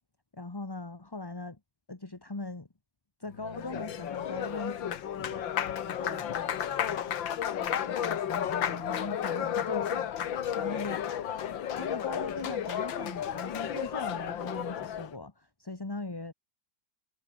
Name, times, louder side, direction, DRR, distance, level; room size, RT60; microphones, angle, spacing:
voice 1, 0.3-1.6 1.9-2.7 3.2-5.5 5.8-6.3 6.9-7.2 7.8-10.1 10.3-11.1 11.7-16.3, left 2 dB, 15° left, 1.1 m, -40 dB
Applause, 3.3-15.1, left 9 dB, 75° left, 2.0 m, -33 dB
omnidirectional pair, 2.1 m